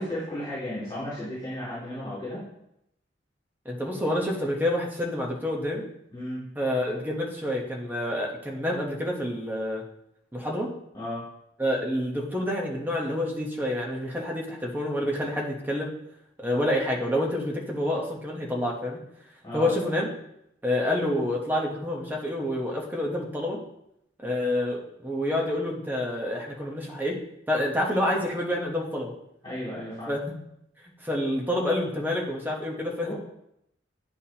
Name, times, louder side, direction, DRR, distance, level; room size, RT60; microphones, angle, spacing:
voice 1, 0.0-2.4 6.1-6.4 10.9-11.2 19.4-19.7 29.4-30.1 33.0-33.1, left 1 dB, 20° left, -11 dB, 2.5 m, -34 dB
voice 2, 3.6-5.8 6.6-9.8 10.3-10.7 11.6-15.9 16.4-19.0 19.5-20.1 20.6-23.6 24.2-27.2 27.5-29.1 30.1-30.3 31.0-33.1, left 1 dB, 10° right, -2 dB, 1.0 m, -28 dB
9.5 x 4.2 x 2.9 m, 0.79 s
head